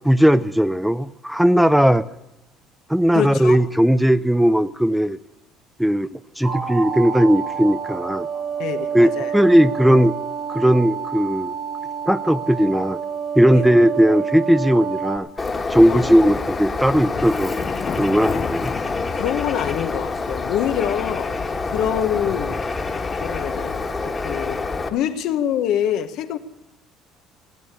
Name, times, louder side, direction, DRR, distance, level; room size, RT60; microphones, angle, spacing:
voice 1, 0.0-2.0 2.9-5.2 5.8-6.1 6.4-8.3 8.9-10.1 10.5-11.5 12.1-13.0 13.4-15.3 15.7-17.6 18.0-18.7, equal, 5° right, 14 dB, 0.5 m, -17 dB
voice 2, 3.1-3.6 8.6-9.4 13.5-13.7 15.9-16.1 19.1-21.3 21.7-22.6 23.2-26.4, left 10 dB, 70° left, 8 dB, 1.1 m, -25 dB
sound 1, 6.4-15.2, right 7 dB, 35° right, 2.1 m, -28 dB
Bird, 15.4-24.9, left 3 dB, 25° left, 1.7 m, -27 dB
sound 2, 15.8-23.8, left 7 dB, 45° left, 0.7 m, -35 dB
16.0 x 8.9 x 8.3 m, 0.94 s
supercardioid pair, 80°, 0 cm